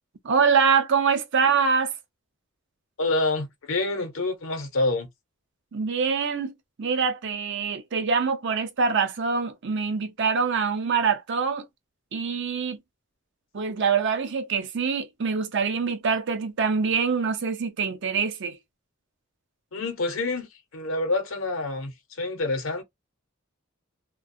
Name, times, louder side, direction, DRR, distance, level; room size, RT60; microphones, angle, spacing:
voice 1, 0.2-1.9 5.7-6.5 6.8-11.6 12.1-12.8 13.5-18.6, right 5 dB, 60° right, 0.6 m, -24 dB
voice 2, 3.0-5.1 19.7-20.5 20.7-22.8, left 2 dB, 75° left, 0.8 m, -27 dB
2.4 x 2.2 x 2.6 m
head